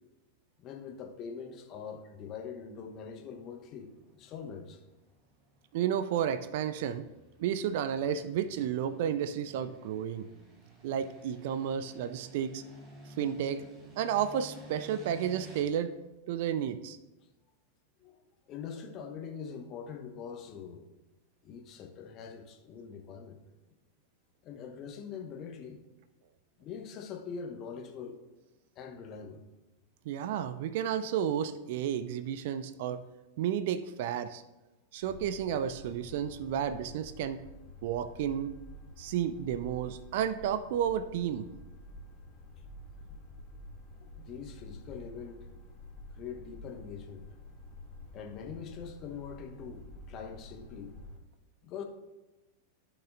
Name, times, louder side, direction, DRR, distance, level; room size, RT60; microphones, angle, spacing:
voice 1, 0.6-4.8 18.0-18.2 18.5-20.9 21.4-23.4 24.4-25.8 26.6-28.2 28.8-29.4 43.0-43.2 44.0-45.4 46.1-47.3 48.1-50.9 51.6-51.8, left 6 dB, 35° left, 4 dB, 1.0 m, -43 dB
sound 1, 2.7-15.6, right 2 dB, 30° right, 1.4 m, -54 dB
voice 2, 5.7-7.1 7.4-10.3 10.8-12.6 13.2-13.7 14.0-15.9 16.3-17.0 30.1-33.0 33.4-34.4 34.9-37.4 37.8-38.6 39.0-41.5, right 9 dB, 50° right, 13 dB, 0.4 m, -32 dB
sound 2, 35.0-51.2, left 1 dB, 10° left, 2.4 m, -49 dB
14.5 x 6.0 x 2.5 m, 1.1 s
figure-of-eight pair, 90°, 0 cm